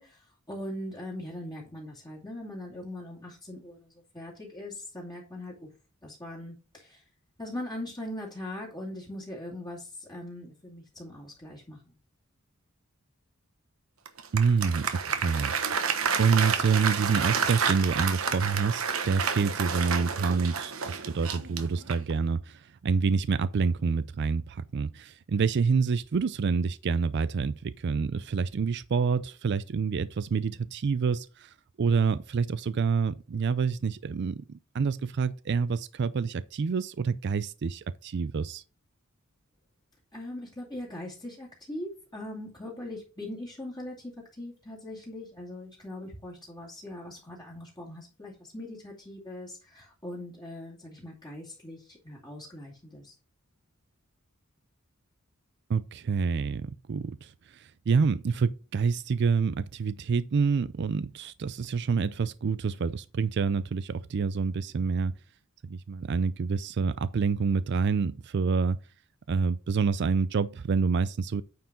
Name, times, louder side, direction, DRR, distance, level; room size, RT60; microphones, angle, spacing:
voice 1, 0.0-5.7 6.0-7.0 7.4-11.9 40.1-53.1, left 1 dB, 20° left, 2.5 m, -41 dB
Applause, 14.1-22.2, right 6 dB, 80° right, 1.1 m, -30 dB
voice 2, 14.3-34.4 34.7-38.6 55.7-65.1 65.6-68.8 69.3-71.4, right 5 dB, 55° right, 0.4 m, -27 dB
9.3 x 4.6 x 4.6 m
head